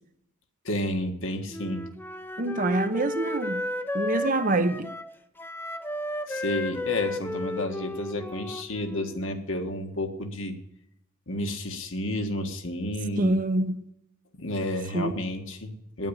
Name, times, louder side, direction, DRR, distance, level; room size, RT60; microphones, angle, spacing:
voice 1, 0.7-1.9 6.3-10.6 11.3-13.3 14.3-16.1, left 1 dB, 65° left, 1.6 m, -31 dB
Wind instrument woodwind instrument, 1.5-9.2, left 1 dB, 10° left, 0.6 m, -33 dB
voice 2, 2.4-3.6 3.9-4.9 13.2-13.8 14.9-15.1, right 2 dB, 40° right, 0.7 m, -26 dB
9.6 x 9.3 x 8.1 m
head